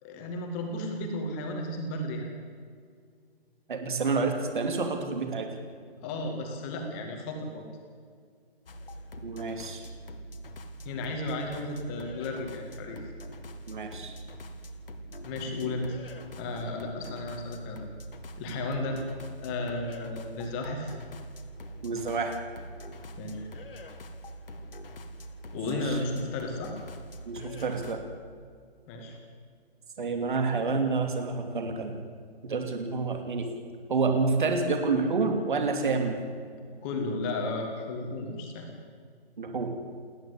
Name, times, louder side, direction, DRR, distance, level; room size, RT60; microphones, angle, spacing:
voice 1, 0.0-2.3 6.0-7.6 10.8-13.0 15.2-16.0 16.4-17.8 18.4-19.0 19.4-21.0 23.2-23.5 25.5-26.7 28.9-29.2 36.7-38.7, left 2 dB, 15° left, 3 dB, 2.0 m, -34 dB
voice 2, 3.7-5.5 9.2-9.8 13.7-14.1 21.8-22.4 25.7-26.0 27.3-28.0 30.0-32.0 32.4-33.4 33.9-36.2 39.4-39.7, right 4 dB, 50° right, 5 dB, 3.0 m, -28 dB
sound 1, 8.7-28.0, equal, 60° left, 2.1 m, -44 dB
29.0 x 11.0 x 8.4 m, 2.1 s
hypercardioid pair, 175°, 31 cm